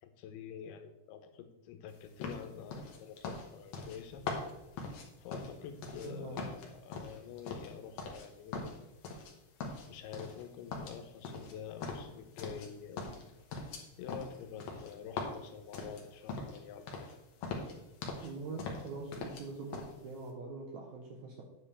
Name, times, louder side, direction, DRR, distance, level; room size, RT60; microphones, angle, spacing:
voice 1, 0.0-4.3 5.2-8.8 9.9-13.2 14.0-17.1, left 8 dB, 90° left, 7 dB, 2.8 m, -47 dB
sound 1, 2.2-6.1 6.4-8.3 8.5-9.3 9.6-10.4 10.7-12.7 13.0-16.6 16.9-17.1 17.4-18.3 18.6-19.4 19.7-19.9, left 4 dB, 65° left, 1.6 m, -41 dB
voice 2, 6.0-6.4 18.2-21.4, right 3 dB, 70° right, 0 dB, 1.8 m, -43 dB
8.8 x 7.4 x 3.4 m, 0.92 s
omnidirectional pair, 4.4 m